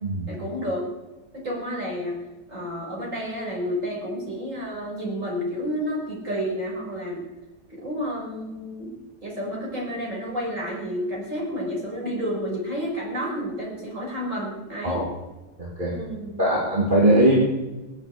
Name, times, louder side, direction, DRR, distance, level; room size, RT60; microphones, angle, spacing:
voice 1, 0.3-0.9 1.3-2.2 2.5-7.2 7.7-8.9 9.2-15.0 15.8-16.4, equal, 45° right, -3 dB, 6.3 m, -30 dB
voice 2, 15.6-16.0 16.4-17.4, right 1 dB, 30° right, -4 dB, 2.8 m, -20 dB
20.5 x 8.1 x 8.5 m, 1.1 s
omnidirectional pair, 1.8 m